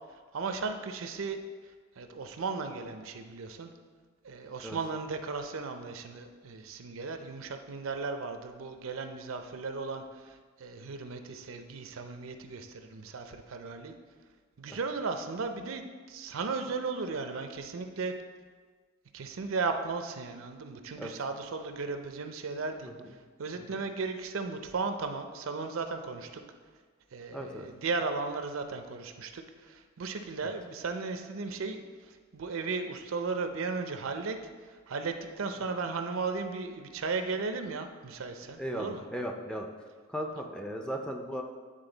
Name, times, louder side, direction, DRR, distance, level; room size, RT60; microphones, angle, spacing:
voice 1, 0.1-1.4 1.6-3.7 4.2-13.9 14.6-18.1 19.1-26.4 27.1-34.4 34.6-39.0, right 4 dB, 75° right, 7 dB, 0.5 m, -36 dB
voice 2, 27.3-27.7 38.4-39.7 40.1-41.4, equal, 5° left, 2 dB, 0.4 m, -37 dB
9.1 x 3.7 x 3.9 m, 1.5 s
head